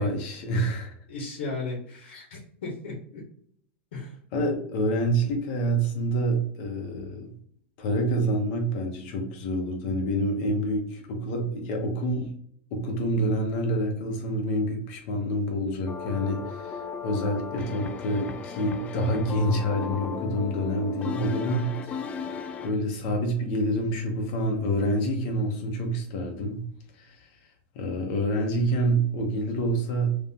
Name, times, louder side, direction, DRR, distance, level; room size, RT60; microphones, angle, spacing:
voice 1, 0.0-0.9 4.3-7.3 7.8-12.3 12.7-26.6 27.0-27.3 27.7-30.2, right 1 dB, 50° left, 2 dB, 1.1 m, -27 dB
voice 2, 1.1-3.2 3.9-4.2, left 3 dB, 85° left, -1 dB, 1.2 m, -36 dB
sound 1, 15.9-22.7, left 6 dB, 20° left, 0.3 m, -36 dB
3.2 x 2.8 x 3.6 m, 0.64 s
supercardioid pair, 145°, 6 cm